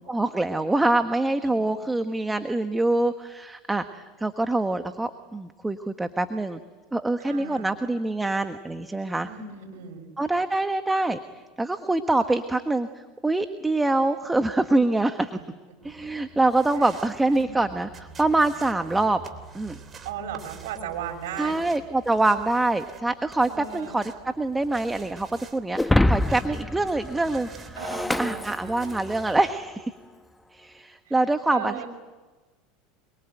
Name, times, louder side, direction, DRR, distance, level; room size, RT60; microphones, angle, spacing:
voice 1, 0.1-6.6 6.9-9.3 10.2-11.2 11.6-12.9 13.2-15.3 15.8-19.2 19.5-19.8 21.4-24.0 24.4-27.8 28.2-29.9 30.5-31.8, right 2 dB, 10° right, 8 dB, 1.4 m, -25 dB
voice 2, 7.2-7.7 9.2-10.1 16.8-16.9 17.3-17.5 20.0-21.6 23.5-24.0 27.8-28.5 31.1-31.2 31.5-31.9, right 8 dB, 75° right, 3 dB, 6.3 m, -36 dB
sound 1, 15.8-29.5, right 5 dB, 30° right, 3.3 m, -47 dB
Shatter, 25.8-29.2, left 1 dB, 5° left, 0.9 m, -26 dB
27.0 x 23.0 x 9.1 m, 1.3 s
hypercardioid pair, 95°, 0 cm